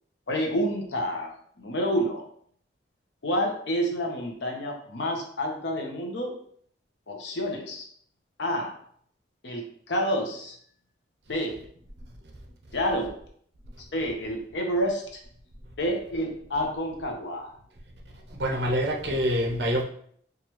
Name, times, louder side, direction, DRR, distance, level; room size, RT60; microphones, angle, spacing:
voice 1, 0.3-1.3 1.6-2.2 3.2-6.3 7.1-7.9 8.4-8.7 9.4-10.5 11.3-11.5 12.7-13.1 13.9-15.2 15.8-17.5, equal, 80° left, 1 dB, 0.9 m, -28 dB
voice 2, 18.3-19.8, equal, 70° right, -1 dB, 0.8 m, -26 dB
4.7 x 2.4 x 3.0 m, 0.62 s
head